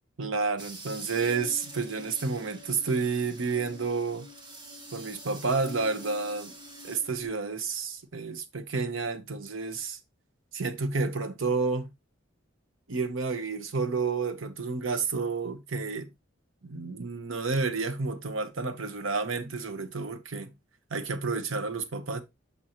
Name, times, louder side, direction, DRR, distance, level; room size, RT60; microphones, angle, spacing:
voice 1, 0.2-4.3 4.9-6.5 6.8-10.0 10.5-11.9 12.9-16.1 16.6-20.5 20.9-22.2, right 4 dB, 80° right, 0.9 m, -30 dB
sound 1, 0.6-7.0, right 2 dB, 25° right, 0.8 m, -47 dB
sound 2, 1.1-7.3, left 3 dB, 25° left, 0.7 m, -49 dB
6.4 x 5.4 x 2.8 m
head